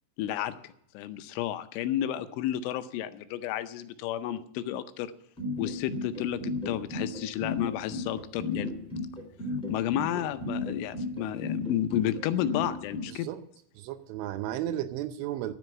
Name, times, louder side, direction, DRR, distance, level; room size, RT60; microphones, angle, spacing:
voice 1, 0.2-0.5 0.9-5.1 5.6-8.7 9.7-13.3, left 11 dB, 80° left, 11 dB, 3.1 m, -31 dB
sound 1, 5.4-13.0, left 3 dB, ahead, 2.1 m, -33 dB
voice 2, 13.1-13.4 13.8-15.5, right 12 dB, 80° right, 9 dB, 3.0 m, -34 dB
11.0 x 7.8 x 9.3 m, 0.72 s
omnidirectional pair, 5.8 m